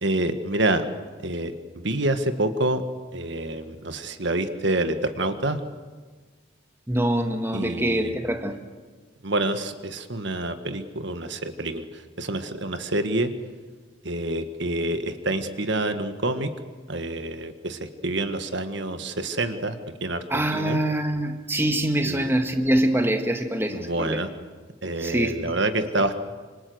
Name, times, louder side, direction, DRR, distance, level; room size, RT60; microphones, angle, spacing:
voice 1, 0.0-0.9 1.2-2.8 3.1-5.6 7.5-8.2 9.2-13.3 14.0-16.5 16.9-20.8 22.0-22.3 23.7-24.3 24.8-26.2, right 2 dB, 60° right, 9 dB, 1.7 m, -27 dB
voice 2, 6.9-8.6 20.3-24.2 25.0-25.5, right 1 dB, 10° right, 5 dB, 1.6 m, -24 dB
26.5 x 26.0 x 8.0 m, 1.4 s
head